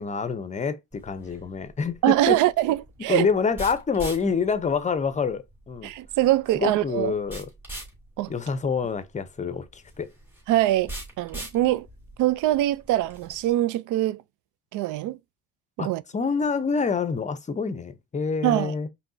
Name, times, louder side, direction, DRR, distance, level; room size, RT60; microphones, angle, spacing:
voice 1, 0.0-2.4 3.1-5.9 6.5-7.5 8.3-10.1 15.8-15.9 16.1-18.9, left 5 dB, 20° left, 0.7 m, -27 dB
sound 1, 0.9-13.5, right 1 dB, 5° right, 2.7 m, -43 dB
voice 2, 2.0-3.3 5.8-7.1 8.2-8.3 10.5-10.9 11.2-11.9 12.2-14.2 14.7-15.2 15.8-16.0 18.4-18.7, right 14 dB, 70° right, 0.5 m, -23 dB
5.1 x 3.3 x 2.6 m
cardioid pair, 120°, 32 cm